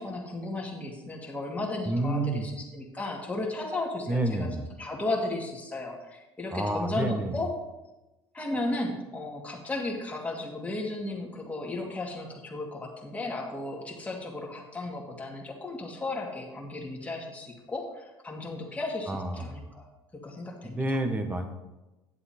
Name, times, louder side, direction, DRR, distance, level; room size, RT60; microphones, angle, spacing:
voice 1, 0.0-4.5 4.8-7.5 8.3-19.9 20.1-21.0, left 2 dB, 15° left, -1 dB, 2.3 m, -34 dB
voice 2, 1.8-2.5 4.1-4.7 6.5-7.4 19.1-19.7 20.6-21.5, right 2 dB, 15° right, 6 dB, 1.4 m, -29 dB
9.7 x 7.6 x 4.4 m, 1.0 s
cardioid pair, 110°, 10 cm